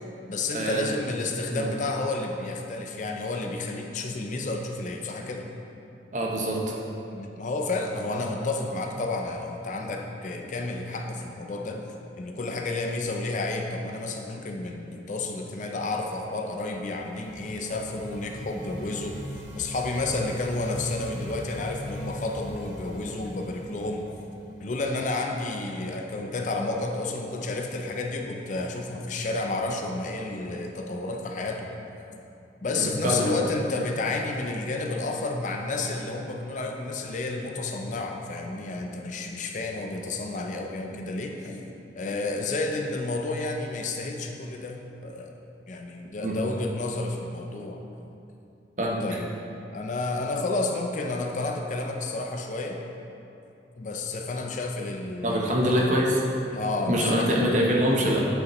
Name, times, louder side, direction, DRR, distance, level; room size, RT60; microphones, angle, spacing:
voice 1, 0.3-5.5 7.1-11.9 12.2-19.2 19.5-24.0 24.6-31.7 32.6-45.3 45.7-47.8 49.0-49.3 49.7-52.8 53.8-56.1 56.5-57.6, left 2 dB, 45° left, 2 dB, 0.5 m, -31 dB
voice 2, 6.1-6.7 32.7-33.3 46.2-46.4 48.8-49.0 55.2-56.2 56.9-58.2, equal, 40° right, -2 dB, 0.9 m, -24 dB
sound 1, 16.4-25.1, equal, 75° right, 1.4 m, -41 dB
8.2 x 5.4 x 3.0 m, 2.7 s
head